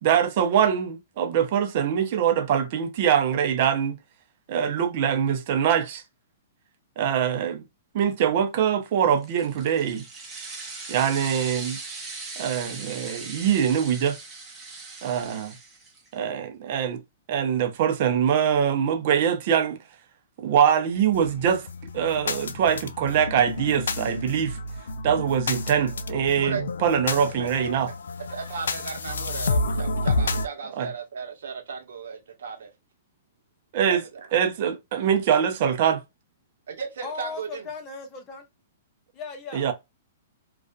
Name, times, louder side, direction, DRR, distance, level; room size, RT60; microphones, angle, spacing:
voice 1, 0.0-4.0 4.5-6.0 7.0-7.6 7.9-10.0 10.9-11.8 12.4-14.2 15.0-15.5 16.1-17.0 17.3-19.8 20.4-21.7 21.9-24.6 25.0-27.9 30.8-30.9 33.7-34.0 34.3-36.0 39.5-39.7, right 8 dB, 50° right, 0.6 m, -23 dB
sound 1, 9.2-16.2, right 3 dB, 15° right, 0.8 m, -39 dB
sound 2, 21.1-30.5, left 2 dB, 85° left, 0.4 m, -30 dB
voice 2, 28.3-32.7 33.9-34.3 36.7-37.7, right 6 dB, 75° right, 0.9 m, -35 dB
voice 3, 37.0-38.5 39.1-39.7, left 4 dB, 30° left, 0.6 m, -37 dB
2.5 x 2.4 x 2.2 m
hypercardioid pair, 135°, 0 cm